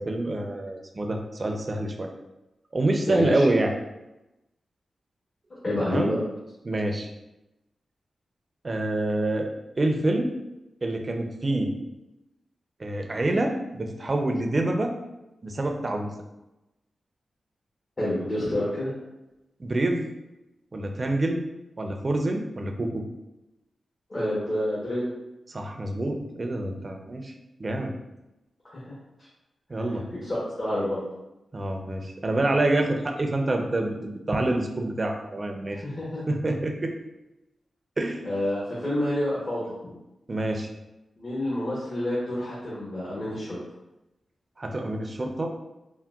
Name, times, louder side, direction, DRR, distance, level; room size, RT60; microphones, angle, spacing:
voice 1, 0.0-2.1 2.7-3.8 5.8-6.1 6.6-7.1 8.6-10.3 10.8-11.7 12.8-14.9 15.4-16.1 19.6-20.1 20.7-21.4 21.8-23.1 25.5-27.3 27.6-27.9 29.7-30.1 31.5-35.8 36.3-36.9 38.0-38.2 40.3-40.7 44.6-45.5, right 2 dB, 40° right, 3 dB, 0.4 m, -27 dB
voice 2, 3.0-3.4 5.6-6.2 18.0-18.9 24.1-25.1 28.7-28.9 30.1-31.0 35.7-36.2 38.2-39.6 41.2-43.6, left 1 dB, 45° left, -7 dB, 0.9 m, -28 dB
3.7 x 2.1 x 2.3 m, 0.95 s
cardioid pair, 55°, 0 cm